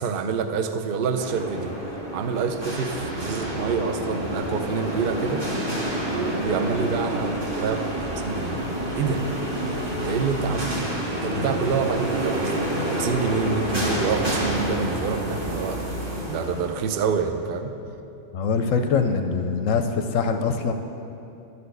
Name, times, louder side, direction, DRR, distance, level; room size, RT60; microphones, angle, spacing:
voice 1, 0.0-1.8 2.1-5.4 6.1-8.6 8.9-9.2 9.9-10.8 11.1-12.6 12.9-16.0 16.3-17.7, right 6 dB, 65° right, 7 dB, 0.5 m, -27 dB
sound 1, 1.2-17.2, right 1 dB, 20° right, 1.2 m, -28 dB
voice 2, 18.3-20.7, left 5 dB, 70° left, 6 dB, 0.9 m, -23 dB
11.5 x 4.2 x 8.0 m, 2.8 s
omnidirectional pair, 1.6 m